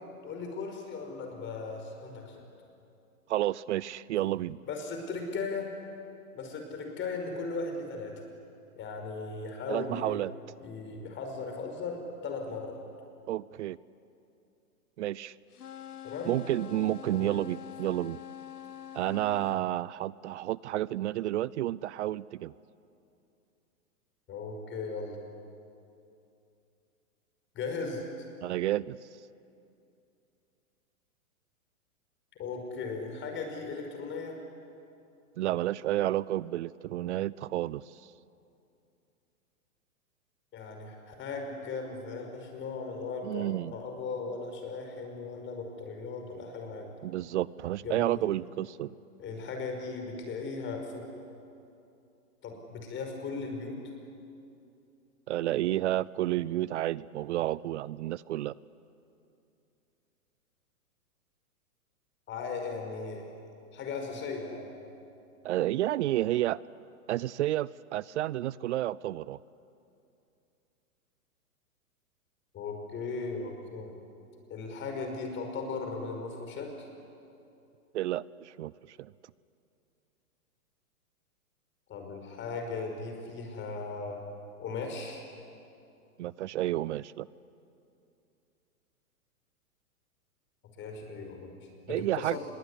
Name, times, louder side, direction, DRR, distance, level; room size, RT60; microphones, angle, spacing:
voice 1, 0.2-2.4 4.7-5.7 6.4-8.1 8.8-10.2 10.6-12.8 16.0-16.4 17.1-17.3 24.3-25.2 27.5-28.1 32.4-34.4 40.5-46.9 47.8-48.2 49.2-51.1 52.4-53.8 62.3-63.3 63.7-64.7 72.5-73.9 74.5-76.9 81.9-84.2 84.6-85.2 90.8-92.5, left 4 dB, 25° left, 3 dB, 5.5 m, -37 dB
voice 2, 3.3-4.6 9.7-10.3 13.3-13.8 15.0-15.4 16.3-18.2 18.9-22.5 28.4-29.0 35.4-38.0 43.2-43.7 47.0-48.9 55.3-58.5 65.4-66.6 67.1-69.4 77.9-79.1 86.2-87.3 91.9-92.4, right 14 dB, 50° right, 22 dB, 0.6 m, -31 dB
sound 1, 15.5-19.6, left 10 dB, 80° left, 1.4 m, -45 dB
27.0 x 22.0 x 10.0 m, 2.7 s
hypercardioid pair, 125°, 45 cm